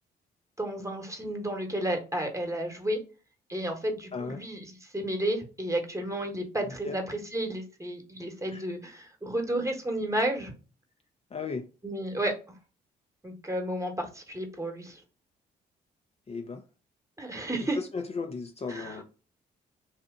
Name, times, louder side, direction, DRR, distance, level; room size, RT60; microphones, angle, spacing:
voice 1, 0.6-3.0 3.5-10.5 11.8-12.4 13.2-15.0 17.2-17.8 18.7-19.0, right 1 dB, 15° right, 1.1 m, -32 dB
voice 2, 4.1-4.4 6.6-7.0 8.5-8.6 11.3-11.7 16.3-16.6 17.7-19.0, left 4 dB, 35° left, 0.5 m, -35 dB
2.8 x 2.4 x 3.6 m
supercardioid pair, 55°, 19 cm